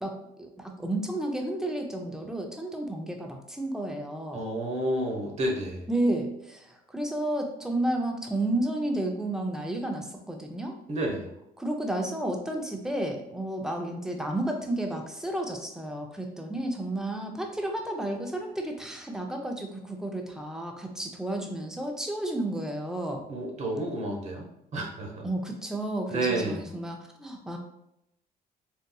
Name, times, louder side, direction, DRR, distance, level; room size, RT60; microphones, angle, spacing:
voice 1, 0.0-4.4 5.9-10.8 11.6-23.2 25.2-27.6, right 1 dB, 5° right, 3 dB, 0.5 m, -32 dB
voice 2, 4.3-5.9 10.9-11.3 23.3-25.3 26.1-26.6, right 1 dB, 40° right, 0 dB, 0.9 m, -30 dB
3.9 x 2.6 x 2.2 m, 0.81 s
cardioid pair, 110°, 17 cm